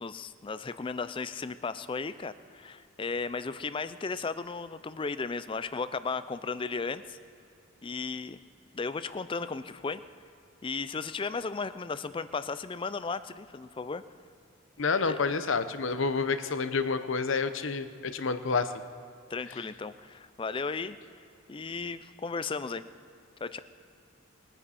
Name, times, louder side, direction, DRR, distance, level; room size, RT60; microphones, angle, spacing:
voice 1, 0.0-7.2 7.8-8.4 8.7-10.0 10.6-14.0 15.0-15.2 19.3-21.0 21.5-22.8 23.4-23.6, left 4 dB, 25° left, 13 dB, 0.4 m, -35 dB
voice 2, 14.8-18.7 19.5-19.6, left 4 dB, 65° left, 11 dB, 0.7 m, -29 dB
21.5 x 9.9 x 4.2 m, 2.5 s
head